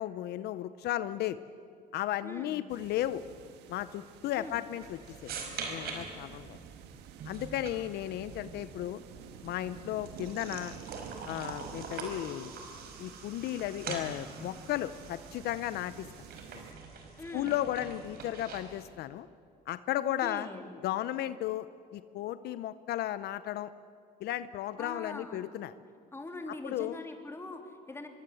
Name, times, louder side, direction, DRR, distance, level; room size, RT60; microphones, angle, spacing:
voice 1, 0.0-1.4 1.9-3.2 3.7-5.3 5.7-6.6 7.2-9.0 9.4-10.7 11.3-12.5 13.0-16.1 16.5-16.6 17.3-19.3 19.7-20.5 20.8-21.7 21.9-23.7 24.2-25.7 26.5-27.0, left 13 dB, 75° left, 14 dB, 0.7 m, -34 dB
voice 2, 2.2-2.6 4.3-4.6 17.2-17.6 20.2-20.7 24.8-25.4 26.1-28.1, left 2 dB, 15° left, 4 dB, 3.3 m, -42 dB
sound 1, 2.7-16.7, right 8 dB, 90° right, 1.6 m, -50 dB
sound 2, 4.8-18.8, right 5 dB, 65° right, 4.8 m, -44 dB
25.5 x 22.0 x 7.8 m, 2.5 s
cardioid pair, 110°, 17 cm